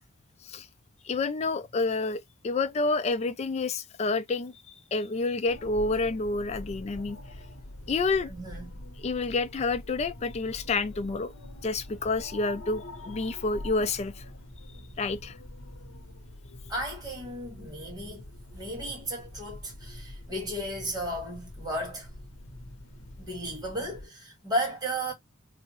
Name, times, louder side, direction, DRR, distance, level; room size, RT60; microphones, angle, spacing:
voice 1, 1.0-7.2 7.9-8.3 9.0-11.3 11.6-14.2 15.0-15.3, left 3 dB, 30° left, 0.3 m, -29 dB
sound 1, 5.5-24.1, left 1 dB, 80° left, 0.7 m, -45 dB
voice 2, 8.2-8.7 16.7-18.2 18.5-22.1 23.2-25.1, right 1 dB, 20° right, 1.4 m, -34 dB
3.5 x 2.0 x 2.9 m
head